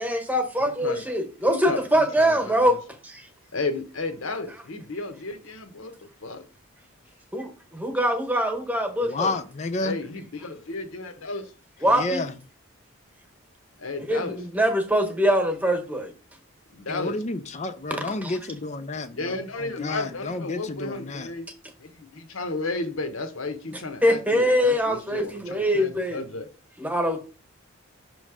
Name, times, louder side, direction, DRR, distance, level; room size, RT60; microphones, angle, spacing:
voice 1, 0.0-2.7 3.0-3.3 7.3-9.3 11.8-12.2 14.1-16.1 18.2-18.3 23.7-26.2 26.8-27.2, equal, 5° right, 1.1 m, -23 dB
voice 2, 1.5-2.8 3.5-6.4 9.8-11.5 13.8-14.4 16.7-17.2 19.1-21.5 21.8-26.5, left 3 dB, 75° left, 1.1 m, -33 dB
voice 3, 9.0-10.0 11.8-12.3 16.9-21.3, left 2 dB, 30° left, 0.4 m, -31 dB
6.2 x 3.2 x 4.9 m
head